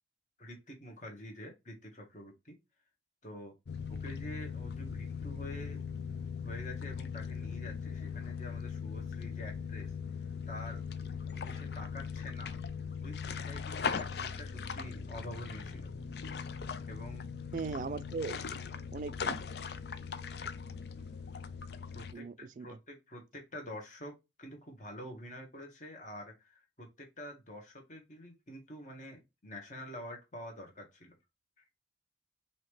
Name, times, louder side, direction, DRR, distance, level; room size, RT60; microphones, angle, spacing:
voice 1, 0.4-2.6 3.2-3.5 3.9-5.8 6.4-9.9 10.2-10.8 11.3-12.5 13.0-15.9 16.9-17.3 21.9-31.2 31.6-31.7, equal, 40° left, 1.6 m, -47 dB
sound 1, 3.7-22.1, left 6 dB, 60° left, 0.5 m, -39 dB
voice 2, 17.5-18.4 18.7-19.4 22.1-22.7, right 4 dB, 45° right, 0.3 m, -39 dB
5.6 x 2.9 x 3.3 m
head